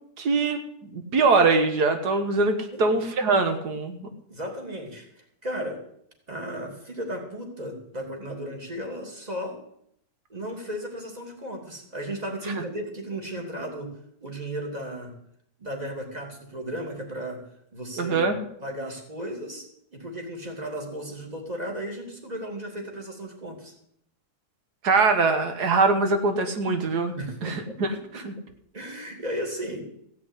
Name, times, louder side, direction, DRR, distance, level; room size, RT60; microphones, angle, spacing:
voice 1, 0.2-0.6 0.9-4.1 18.0-18.4 24.8-27.1 27.4-27.9 28.3-28.4, right 3 dB, 90° right, 7 dB, 1.9 m, -22 dB
voice 2, 4.3-5.8 6.3-9.6 10.3-13.9 14.2-15.1 15.6-17.4 17.7-18.3 18.6-19.6 19.9-23.7 27.2-27.8 28.1-28.4 28.7-29.9, right 1 dB, 25° right, 2 dB, 2.7 m, -35 dB
16.0 x 6.0 x 9.6 m, 0.71 s
omnidirectional pair, 1.7 m